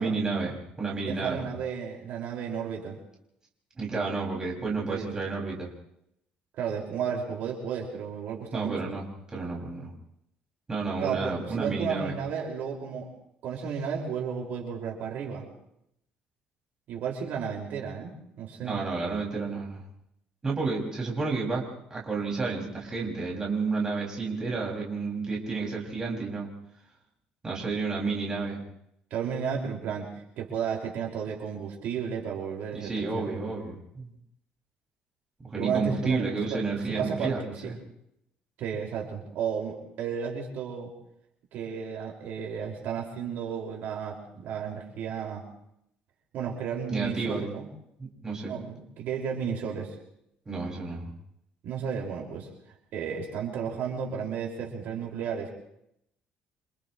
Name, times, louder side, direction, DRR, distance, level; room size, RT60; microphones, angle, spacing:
voice 1, 0.0-1.5 3.8-5.7 8.5-9.1 9.3-9.9 10.7-12.1 18.6-19.8 20.4-21.6 21.9-26.5 27.4-28.6 32.7-34.1 35.4-37.7 46.9-47.4 48.0-48.5 50.5-51.1, right 4 dB, 20° right, -3 dB, 6.4 m, -31 dB
voice 2, 1.0-3.0 4.6-5.1 6.6-8.8 11.0-13.1 13.4-15.5 16.9-18.8 29.1-30.1 30.4-33.4 35.6-37.4 37.6-37.7 38.6-40.9 41.5-45.4 46.3-47.7 48.4-49.9 51.6-52.5 52.9-55.5, right 7 dB, 65° right, -1 dB, 5.8 m, -33 dB
29.0 x 28.0 x 3.3 m, 0.77 s
cardioid pair, 150°, 3 cm